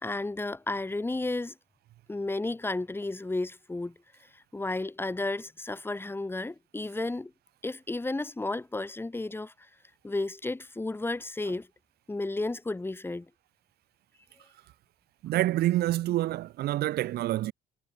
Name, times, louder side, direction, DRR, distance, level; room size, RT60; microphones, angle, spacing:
voice 1, 0.0-1.5 2.1-3.9 4.3-7.3 7.6-9.5 10.0-11.7 12.1-13.3, left 2 dB, 15° left, 4.5 m, -32 dB
voice 2, 15.2-17.5, right 15 dB, 70° right, 1.1 m, -27 dB
cardioid pair, 110°, 17 cm